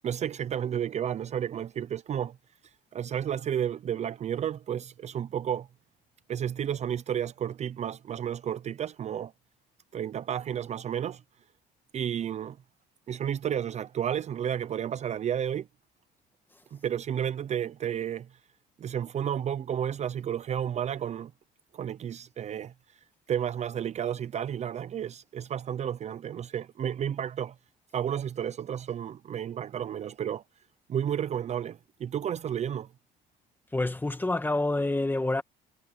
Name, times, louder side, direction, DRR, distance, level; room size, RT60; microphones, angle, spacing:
voice 1, 0.0-2.4 2.9-5.7 6.3-9.3 9.9-11.2 11.9-12.6 13.1-15.7 16.7-18.3 18.8-21.3 21.7-22.7 23.3-27.5 27.9-30.4 30.9-32.9, right 9 dB, 40° right, 0.6 m, -32 dB
voice 2, 33.7-35.4, left 2 dB, 10° left, 2.0 m, -27 dB
cardioid pair, 110°, 17 cm